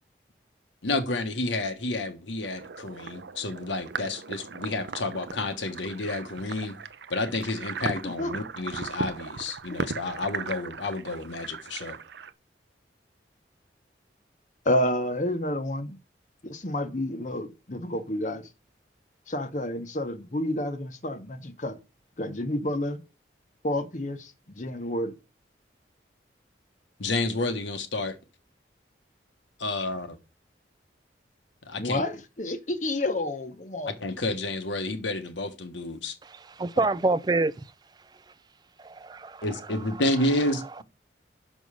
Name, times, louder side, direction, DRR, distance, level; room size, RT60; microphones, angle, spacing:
voice 1, 0.8-6.8 7.1-12.0 27.0-28.2 29.6-30.2 31.6-32.0 33.9-36.1 39.4-40.8, left 2 dB, 90° left, 1.3 m, -30 dB
sound 1, 2.4-12.3, right 5 dB, 70° right, 0.6 m, -38 dB
voice 2, 14.6-16.0 16.4-18.5 19.3-21.8 22.2-23.0 23.6-25.1 31.8-33.9, left 1 dB, 40° left, 0.9 m, -29 dB
voice 3, 36.2-37.7 38.8-39.4, right 2 dB, 20° right, 0.4 m, -27 dB
6.2 x 5.4 x 6.3 m
head